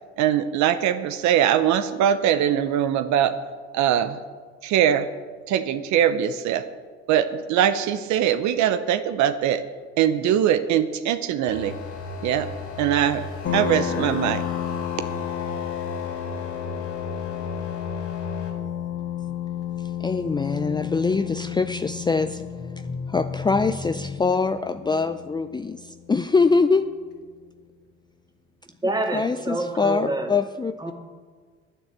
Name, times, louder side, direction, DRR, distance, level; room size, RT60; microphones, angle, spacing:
voice 1, 0.2-3.4 3.7-4.2 4.6-5.1 5.5-6.7 7.1-9.6 10.0-11.8 12.2-12.5 12.8-13.3 13.5-14.4, right 10 dB, 70° right, 11 dB, 0.8 m, -22 dB
sound 1, 11.5-18.5, left 3 dB, 75° left, 3.5 m, -35 dB
sound 2, 13.4-26.7, left 10 dB, 55° left, 2.1 m, -32 dB
voice 2, 19.8-26.9 28.8-30.7, left 4 dB, 15° left, 9 dB, 0.5 m, -24 dB
voice 3, 28.8-30.3 30.8-30.9, right 2 dB, 15° right, 3 dB, 2.1 m, -27 dB
9.9 x 9.1 x 7.5 m, 1.5 s
supercardioid pair, 80°, 29 cm